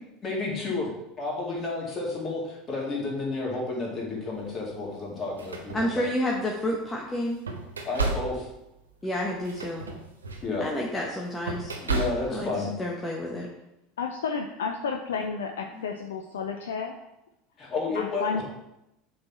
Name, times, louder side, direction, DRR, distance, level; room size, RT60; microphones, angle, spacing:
voice 1, 0.2-0.9 1.2-6.1 7.9-8.5 10.4-10.7 11.7-12.7 15.7-15.8 17.6-18.4, left 3 dB, 35° left, -3 dB, 2.4 m, -31 dB
sound 1, 4.3-4.5 5.2-6.5 7.0-12.6, right 4 dB, 85° right, 0.8 m, -34 dB
voice 2, 5.7-7.4 9.0-9.8 10.6-11.7 12.3-13.5, left 1 dB, 15° left, -1 dB, 1.0 m, -30 dB
voice 3, 14.0-17.0 17.9-18.4, left 5 dB, 75° left, 4 dB, 0.5 m, -31 dB
7.7 x 3.9 x 4.2 m, 0.88 s
figure-of-eight pair, 75°, 0 cm